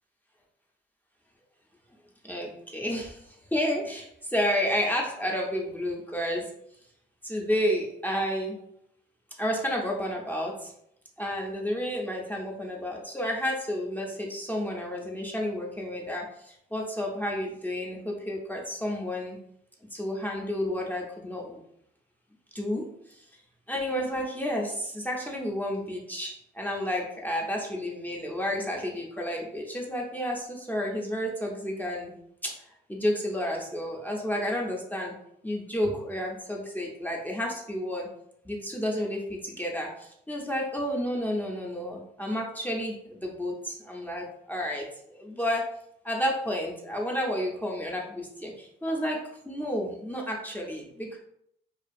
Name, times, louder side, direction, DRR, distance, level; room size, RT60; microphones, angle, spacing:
voice 1, 2.2-6.5 7.2-8.6 9.4-10.7 11.2-19.4 19.9-21.6 22.5-23.2 23.7-32.1 32.4-32.6 32.9-35.1 35.4-38.1 38.4-45.7 46.0-51.2, equal, 10° left, -1 dB, 0.5 m, -31 dB
2.4 x 2.3 x 2.5 m, 0.74 s
cardioid pair, 90°, 20 cm